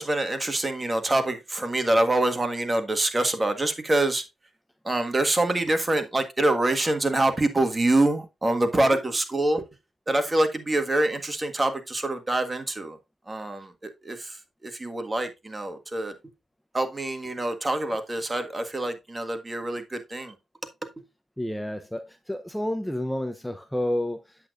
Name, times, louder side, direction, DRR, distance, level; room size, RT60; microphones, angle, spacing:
voice 1, 0.0-4.2 4.8-9.6 10.1-13.0 13.3-13.7 14.0-14.2 14.8-16.1 16.7-20.3, right 2 dB, 25° right, 1.6 m, -25 dB
voice 2, 21.4-24.4, left 1 dB, 5° left, 0.7 m, -30 dB
8.7 x 7.9 x 2.5 m
cardioid pair, 65°, 0 cm